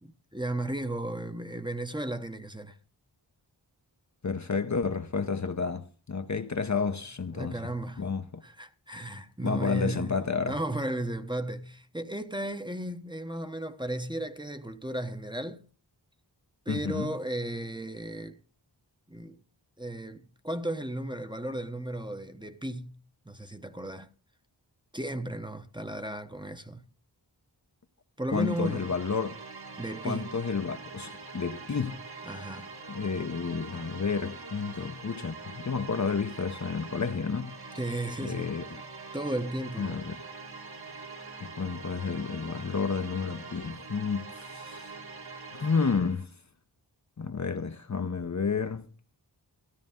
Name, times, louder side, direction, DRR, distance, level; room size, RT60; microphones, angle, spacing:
voice 1, 0.0-2.8 7.3-8.1 8.4-10.2 10.4-15.6 16.7-18.4 19.1-19.4 19.8-23.0 23.2-24.1 24.9-26.9 28.2-28.9 29.8-30.3 32.2-32.7 37.7-38.5 39.1-40.0, right 1 dB, 10° right, 0.9 m, -35 dB
voice 2, 4.2-7.6 8.0-8.4 9.4-10.6 16.7-17.1 28.3-29.3 30.0-32.0 32.9-37.6 38.2-38.8 39.8-40.2 41.4-45.0 45.5-46.3 47.2-48.9, left 5 dB, 40° left, 0.8 m, -31 dB
sound 1, 28.3-46.2, right 4 dB, 60° right, 2.0 m, -44 dB
13.5 x 13.0 x 3.6 m
wide cardioid pair, 60°, 43 cm